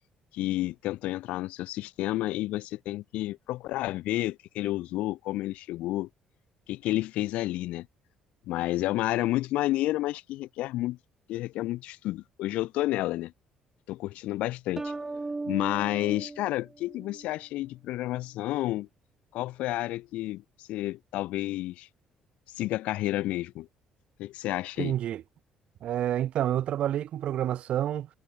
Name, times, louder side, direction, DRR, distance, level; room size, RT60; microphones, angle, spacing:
voice 1, 0.3-6.1 6.7-7.9 8.5-11.0 11.3-13.3 13.9-14.9 15.4-18.9 19.3-21.9 22.5-23.7 24.2-24.9, left 16 dB, 80° left, 6.4 m, -30 dB
sound 1, 14.8-17.4, right 3 dB, 20° right, 2.8 m, -37 dB
voice 2, 24.8-25.2 25.8-28.1, right 11 dB, 65° right, 3.6 m, -28 dB
cardioid pair, 90°, 2 cm